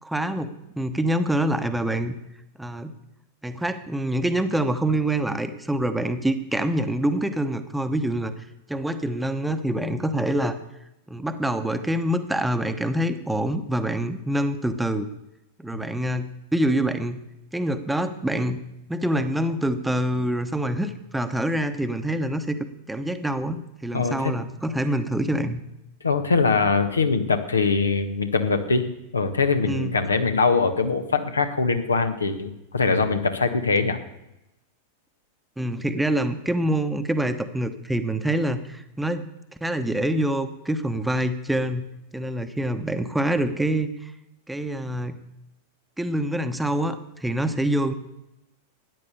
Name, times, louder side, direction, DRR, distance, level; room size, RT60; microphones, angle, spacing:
voice 1, 0.0-2.2 2.6-2.9 3.4-8.3 8.7-10.6 11.1-15.1 15.6-17.2 17.5-18.6 18.9-22.6 22.9-25.6 29.7-30.0 35.6-39.3 39.6-41.9 42.1-44.1 44.5-45.2 46.0-47.9, right 1 dB, 5° right, 9 dB, 1.0 m, -26 dB
voice 2, 23.9-24.3 26.0-28.9 29.1-34.0, left 4 dB, 75° left, 8 dB, 1.3 m, -22 dB
13.5 x 9.7 x 6.8 m, 0.88 s
figure-of-eight pair, 90°, 0 cm